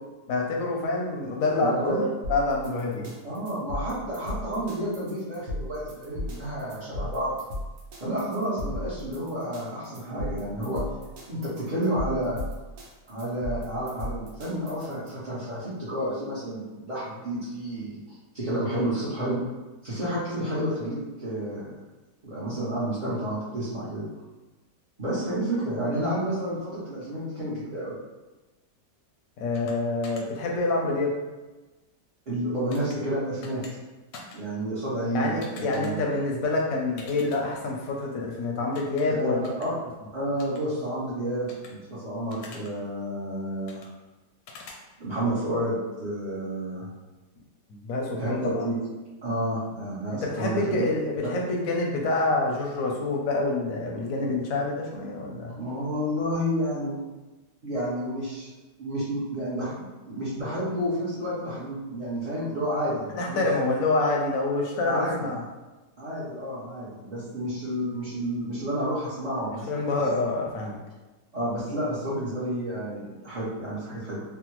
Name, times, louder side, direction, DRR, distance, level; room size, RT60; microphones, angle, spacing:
voice 1, 0.3-3.1 29.4-31.1 35.1-39.4 47.7-48.7 50.2-55.6 63.2-65.4 69.7-70.8, left 2 dB, 65° left, -1 dB, 0.9 m, -27 dB
voice 2, 1.6-2.0 2.8-2.9 3.2-7.3 8.0-10.8 11.3-12.4 13.1-18.0 18.3-19.4 19.8-21.7 22.2-24.0 25.0-28.0 32.3-33.6 34.3-36.1 39.1-39.7 40.1-43.9 45.0-46.9 48.2-48.8 49.2-50.9 55.6-57.0 57.6-58.5 58.8-59.7 60.1-63.4 64.9-65.2 66.0-69.7 71.3-74.2, right 1 dB, 40° right, -12 dB, 0.6 m, -30 dB
sound 1, 2.2-15.1, left 1 dB, 75° right, 1.3 m, -36 dB
sound 2, 29.5-29.7 30.0-30.2 32.7-33.0 33.4-33.7 34.1-34.4 35.4-35.9 37.0-37.4 38.7-39.0 39.4-39.7 40.4-40.6 41.5-41.7 42.3-42.7 43.7-43.9 44.5-44.8, left 4 dB, 85° left, 1.2 m, -45 dB
3.4 x 2.1 x 3.0 m, 1.2 s
omnidirectional pair, 1.8 m